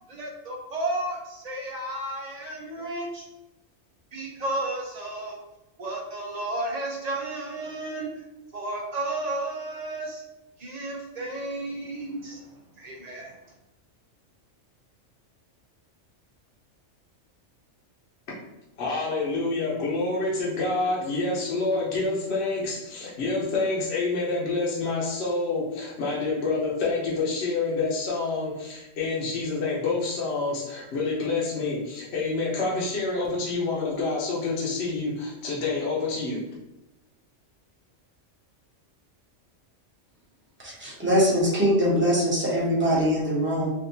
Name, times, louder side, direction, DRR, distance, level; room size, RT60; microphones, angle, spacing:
voice 1, 0.1-3.2 4.1-5.4 5.8-8.1 8.5-10.2 10.6-12.4 12.8-13.3, right 2 dB, 50° right, -1 dB, 0.5 m, -32 dB
voice 2, 18.8-36.4, left 3 dB, 60° left, -5 dB, 1.0 m, -27 dB
voice 3, 40.6-43.7, equal, 10° right, -6 dB, 0.8 m, -22 dB
3.5 x 2.5 x 2.7 m, 0.96 s
omnidirectional pair, 1.3 m